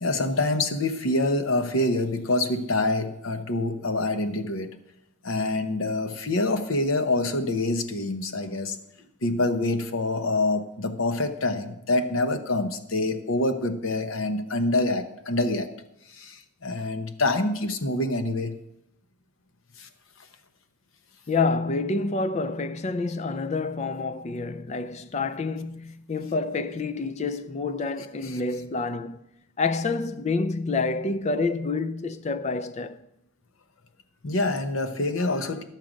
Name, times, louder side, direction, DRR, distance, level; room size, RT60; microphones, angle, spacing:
voice 1, 0.0-4.8 5.2-8.8 9.2-15.7 16.1-18.6 19.8-19.9 28.2-28.4 34.2-35.6, left 2 dB, 65° left, 0.9 m, -26 dB
voice 2, 21.3-29.3 29.6-33.1, left 3 dB, 30° left, 0.4 m, -28 dB
11.0 x 7.4 x 5.1 m
head